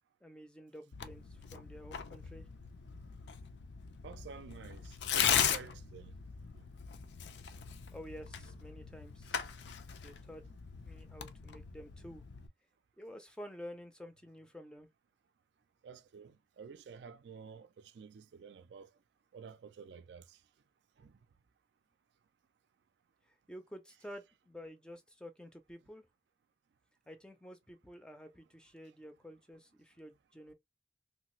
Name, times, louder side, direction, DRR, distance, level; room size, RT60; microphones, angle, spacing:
voice 1, 0.2-2.5 7.9-9.5 10.0-10.4 10.8-12.2 13.0-14.9 23.5-26.1 27.1-30.5, equal, 5° left, 0.4 m, -50 dB
Tearing, 0.9-12.5, left 8 dB, 85° left, 0.5 m, -38 dB
voice 2, 4.0-6.1 15.8-18.9 19.3-20.4 21.0-21.1, right 6 dB, 80° right, 0.4 m, -51 dB
3.1 x 2.4 x 3.0 m
head